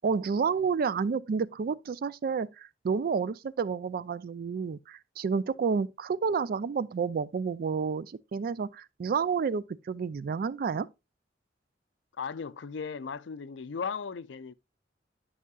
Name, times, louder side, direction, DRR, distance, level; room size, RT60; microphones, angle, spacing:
voice 1, 0.0-10.9, right 5 dB, 55° right, 0.3 m, -30 dB
voice 2, 12.2-14.5, left 5 dB, 75° left, 0.4 m, -36 dB
11.0 x 5.6 x 2.3 m
head